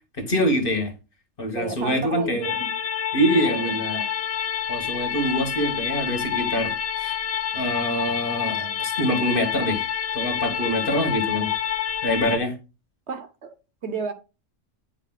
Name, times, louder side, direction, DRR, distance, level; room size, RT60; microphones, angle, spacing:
voice 1, 0.2-0.9 1.4-2.5 3.1-4.0 4.7-7.2 7.5-9.9 10.1-11.5 12.0-12.5, equal, 45° left, 1.5 m, -25 dB
voice 2, 1.5-2.7 3.3-3.8 13.1-13.5 13.8-14.1, right 5 dB, 65° right, 1.0 m, -32 dB
sound 1, 2.4-12.4, left 9 dB, 60° left, 0.8 m, -28 dB
9.1 x 4.8 x 2.3 m
omnidirectional pair, 1.3 m